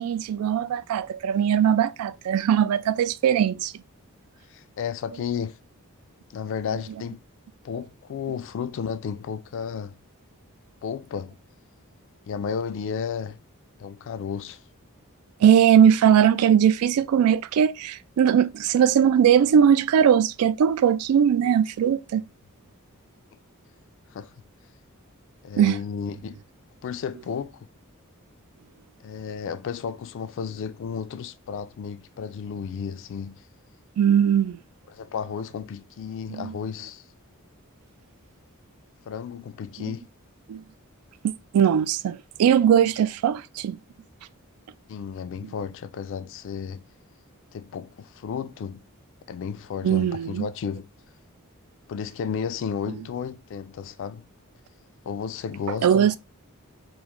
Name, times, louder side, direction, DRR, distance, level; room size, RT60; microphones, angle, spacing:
voice 1, 0.0-3.7 15.4-22.2 25.6-25.8 34.0-34.6 36.3-36.5 39.8-39.9 40.5-40.6 41.5-43.8 49.8-50.5 55.8-56.2, right 8 dB, 85° right, 0.3 m, -20 dB
voice 2, 4.5-5.6 6.3-7.2 7.6-10.0 10.8-11.4 12.3-13.4 13.8-14.6 24.1-24.3 25.4-26.4 26.8-27.7 29.0-33.4 34.9-37.0 39.1-40.0 44.9-46.8 47.5-48.8 49.3-50.9 51.9-54.3 55.0-56.2, left 7 dB, 60° left, 0.3 m, -33 dB
3.0 x 2.5 x 3.4 m
head